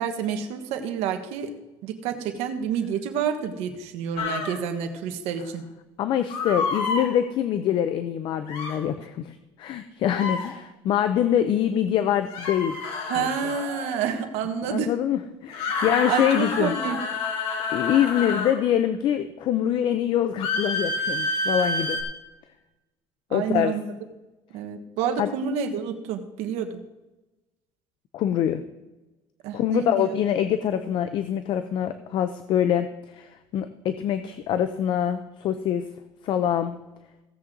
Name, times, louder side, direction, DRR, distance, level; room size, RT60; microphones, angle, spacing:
voice 1, 0.0-1.5 1.8-5.7 13.1-14.9 16.1-17.0 23.3-23.8 24.5-26.8 29.4-30.1, right 7 dB, 80° right, 6 dB, 1.4 m, -28 dB
sound 1, 4.2-4.6 6.3-7.1 8.5-8.8 10.1-10.5 12.3-14.1 15.5-18.6 20.4-22.0, left 3 dB, 70° left, 2.8 m, -29 dB
voice 2, 6.0-12.7 13.2-13.5 14.7-16.7 17.7-22.0 23.3-23.7 25.2-25.3 28.1-28.6 29.5-35.8 36.2-36.7, left 10 dB, 50° left, 10 dB, 0.6 m, -25 dB
16.5 x 7.7 x 3.8 m, 1.1 s
cardioid pair, 155°, 11 cm